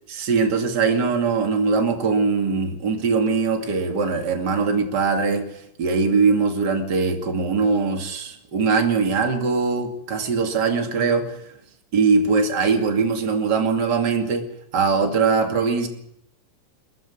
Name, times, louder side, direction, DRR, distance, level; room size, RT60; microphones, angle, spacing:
voice 1, 0.1-5.5 5.8-11.5 11.9-14.5 14.7-15.9, right 4 dB, 35° right, 3 dB, 2.8 m, -21 dB
21.0 x 15.0 x 9.7 m, 0.75 s
omnidirectional pair, 3.8 m